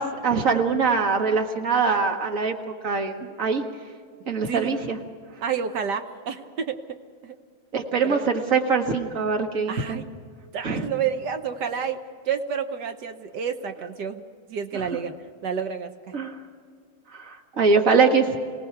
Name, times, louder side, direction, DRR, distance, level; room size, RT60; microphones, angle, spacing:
voice 1, 0.0-2.6 2.8-3.6 4.3-5.0 7.7-10.0 10.6-10.9 14.7-14.9 16.1-16.4 17.1-18.4, right 5 dB, 40° right, 4 dB, 1.8 m, -23 dB
voice 2, 4.5-4.8 5.4-7.4 8.0-8.3 9.7-10.0 10.5-16.1, right 7 dB, 60° right, 7 dB, 1.4 m, -30 dB
26.0 x 18.0 x 5.9 m, 2.1 s
omnidirectional pair, 2.4 m